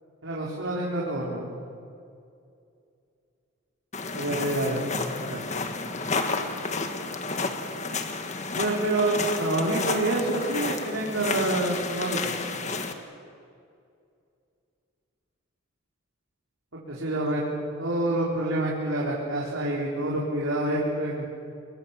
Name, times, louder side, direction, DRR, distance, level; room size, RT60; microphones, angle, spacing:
voice 1, 0.2-1.5 4.1-4.8 5.2-5.4 8.5-12.4 16.9-17.4 17.8-21.3, right 2 dB, 75° right, -5 dB, 4.3 m, -27 dB
sound 1, 3.9-12.9, left 3 dB, 35° left, 1.6 m, -31 dB
27.5 x 22.5 x 7.4 m, 2.4 s
head